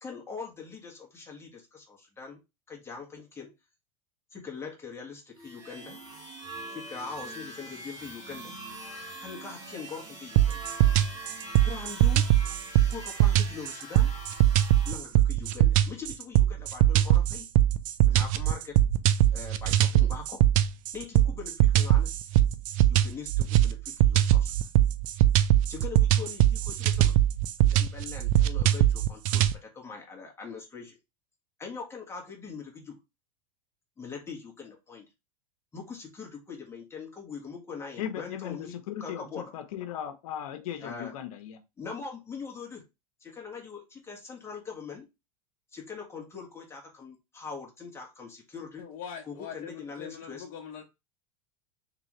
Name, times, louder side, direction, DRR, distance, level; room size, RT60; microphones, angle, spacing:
voice 1, 0.0-2.4 2.7-3.5 4.3-6.0 6.7-8.6 9.2-10.6 11.6-12.3 12.9-14.1 14.8-17.5 18.0-18.8 19.3-20.4 20.9-22.1 22.8-24.7 25.7-27.1 27.6-31.0 31.6-33.0 34.0-35.1 35.7-39.5 40.8-41.1 41.8-42.8 43.2-45.1 45.7-48.9 49.2-50.4, left 5 dB, 15° left, 1.4 m, -42 dB
sound 1, 5.4-15.0, right 2 dB, 20° right, 1.6 m, -43 dB
sound 2, 10.4-29.5, right 12 dB, 65° right, 0.5 m, -22 dB
voice 2, 38.0-41.6, left 10 dB, 75° left, 0.8 m, -37 dB
voice 3, 48.8-50.8, left 7 dB, 50° left, 1.1 m, -42 dB
4.0 x 3.2 x 3.0 m
supercardioid pair, 125°, 19 cm